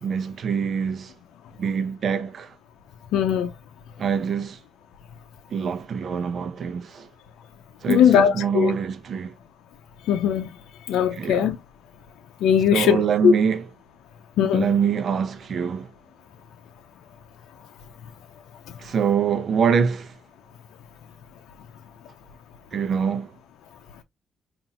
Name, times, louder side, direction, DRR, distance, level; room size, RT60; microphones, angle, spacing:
voice 1, 0.0-1.1 1.6-2.5 4.0-4.6 5.5-7.1 7.8-9.3 11.1-11.5 12.7-13.7 14.5-15.9 18.8-20.2 22.7-23.4, right 7 dB, 55° right, 0.7 m, -25 dB
voice 2, 3.1-3.5 7.9-8.7 10.1-10.5 10.9-11.6 12.4-13.0 13.2-13.3 14.4-14.7, left 8 dB, 85° left, 0.6 m, -19 dB
5.2 x 2.6 x 2.8 m
cardioid pair, 90°, 0 cm